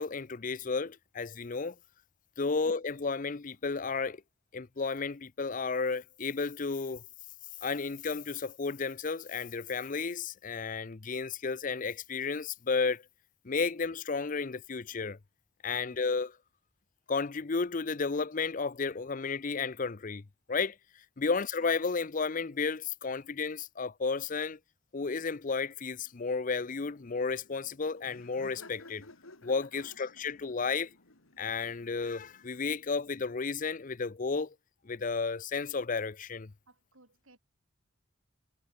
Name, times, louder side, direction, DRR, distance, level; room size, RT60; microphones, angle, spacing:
voice 1, 0.0-1.8 2.4-4.2 4.5-7.0 7.6-13.0 13.4-15.2 15.6-16.4 17.1-20.2 20.5-20.8 21.2-24.6 24.9-29.1 29.4-30.9 31.4-34.5 34.8-36.5, left 4 dB, 40° left, 0.6 m, -33 dB
Laughter, 26.6-32.9, left 2 dB, 90° left, 4.2 m, -56 dB
voice 2, 36.7-37.4, right 2 dB, 80° right, 6.1 m, -62 dB
head